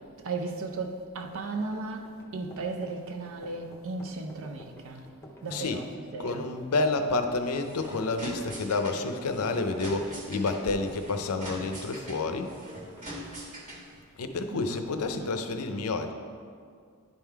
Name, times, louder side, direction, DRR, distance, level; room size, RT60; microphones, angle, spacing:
voice 1, 0.2-5.1 5.4-6.5 14.5-15.3, right 3 dB, 65° right, 0.6 m, -36 dB
sound 1, 1.6-12.2 12.5-12.7 13.0-13.2, equal, 10° left, 0.6 m, -51 dB
voice 2, 5.5-5.8 6.2-12.5 14.2-16.1, left 3 dB, 80° left, 0.6 m, -29 dB
sound 2, 7.4-14.0, equal, 35° right, 1.4 m, -42 dB
10.5 x 3.7 x 4.6 m
head